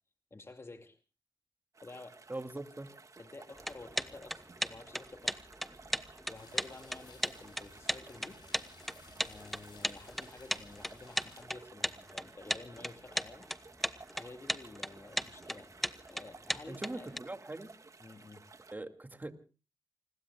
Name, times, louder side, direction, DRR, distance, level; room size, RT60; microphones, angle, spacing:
voice 1, 0.3-1.0 1.8-2.2 3.2-5.4 6.3-8.9 9.2-13.5 14.1-15.7 16.1-17.1 18.0-18.4, left 2 dB, 35° left, 5 dB, 2.3 m, -51 dB
sound 1, 1.7-18.7, right 3 dB, 45° right, 1.6 m, -56 dB
voice 2, 2.3-2.9 16.7-17.7 18.7-19.3, right 2 dB, 25° right, 7 dB, 2.3 m, -41 dB
sound 2, 3.6-17.2, equal, ahead, 1.0 m, -36 dB
sound 3, 6.4-11.4, left 4 dB, 85° left, 5.8 m, -58 dB
29.5 x 21.0 x 2.3 m, 0.36 s
cardioid pair, 65°, 8 cm